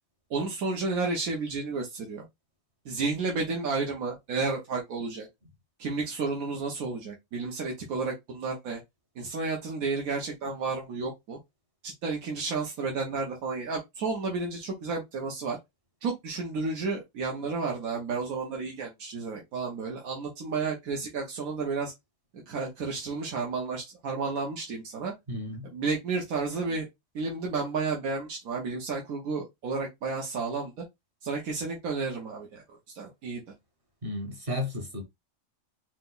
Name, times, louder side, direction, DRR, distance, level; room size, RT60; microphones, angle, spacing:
voice 1, 0.3-2.3 2.8-5.3 5.8-8.8 9.2-11.4 11.8-15.6 16.0-21.9 22.3-25.1 25.6-26.9 27.1-30.8 31.2-32.6 32.9-33.4, right 4 dB, 90° right, 1.5 m, -32 dB
voice 2, 25.3-25.7 34.0-35.0, left 1 dB, 45° right, 1.2 m, -33 dB
4.9 x 2.1 x 3.9 m
omnidirectional pair, 1.5 m